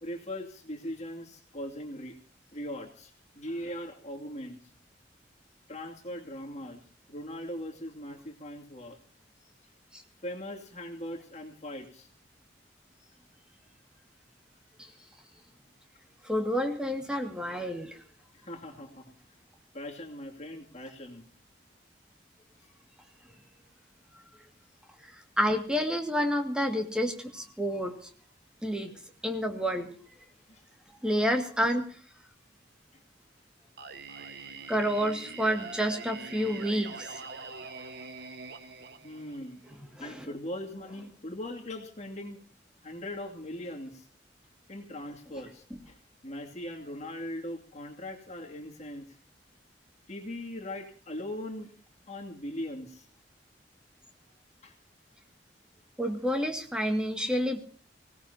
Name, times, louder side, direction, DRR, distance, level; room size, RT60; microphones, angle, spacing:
voice 1, 0.0-2.2 2.5-4.6 5.7-6.8 7.1-9.0 10.2-12.1 18.3-19.1 19.7-21.2 30.5-30.6 32.9-33.0 39.0-39.6 40.0-42.4 42.8-44.0 44.7-46.0 46.2-49.1 50.1-51.7 52.1-53.1 54.6-54.7, left 1 dB, 40° left, 2 dB, 2.6 m, -40 dB
voice 2, 16.2-18.0 25.0-28.1 28.6-28.9 29.2-29.9 31.0-31.8 34.7-37.1 40.0-40.3 56.0-57.6, equal, 5° right, 3 dB, 2.2 m, -29 dB
Singing, 33.8-39.7, right 4 dB, 65° right, 1.5 m, -44 dB
24.5 x 17.5 x 2.9 m, 0.43 s
head